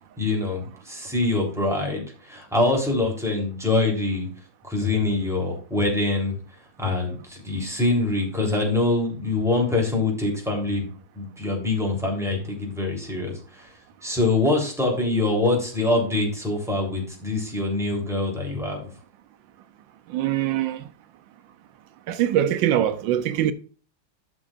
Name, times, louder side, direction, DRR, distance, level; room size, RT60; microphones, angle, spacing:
voice 1, 0.2-4.3 4.6-6.3 6.8-10.9 11.1-13.7 14.0-18.8, left 2 dB, ahead, 3.4 m, -24 dB
voice 2, 20.1-20.8 22.1-23.5, right 11 dB, 90° right, 1.4 m, -23 dB
13.5 x 6.2 x 2.5 m
omnidirectional pair, 2.0 m